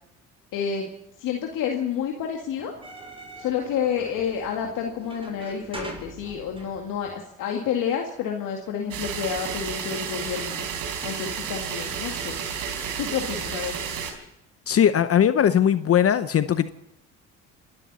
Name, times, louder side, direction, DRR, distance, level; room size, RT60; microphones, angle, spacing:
voice 1, 0.5-0.9 1.2-2.7 3.4-10.7 11.0-12.4 13.0-13.8, left 7 dB, 70° left, 1 dB, 2.2 m, -29 dB
sound 1, 2.6-7.2, right 1 dB, 15° right, 6.3 m, -42 dB
sound 2, 8.9-14.1, right 7 dB, 75° right, 4.2 m, -31 dB
voice 2, 14.7-16.7, left 9 dB, 45° left, 12 dB, 0.8 m, -19 dB
26.5 x 12.5 x 4.2 m, 0.88 s
supercardioid pair, 80°, 33 cm